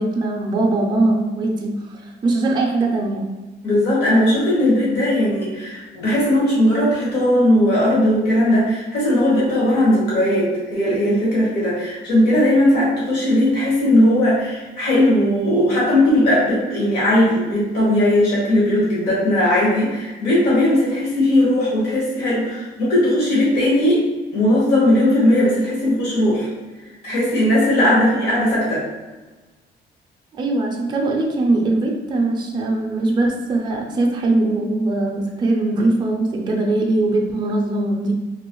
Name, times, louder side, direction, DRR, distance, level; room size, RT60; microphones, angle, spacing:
voice 1, 0.0-3.3 27.8-27.9 30.4-38.1, right 2 dB, 25° right, -1 dB, 0.5 m, -21 dB
voice 2, 3.6-24.0 24.3-26.5 27.0-28.8, left 1 dB, 65° left, -6 dB, 1.4 m, -18 dB
3.1 x 2.9 x 3.0 m, 1.2 s
cardioid pair, 170°, 18 cm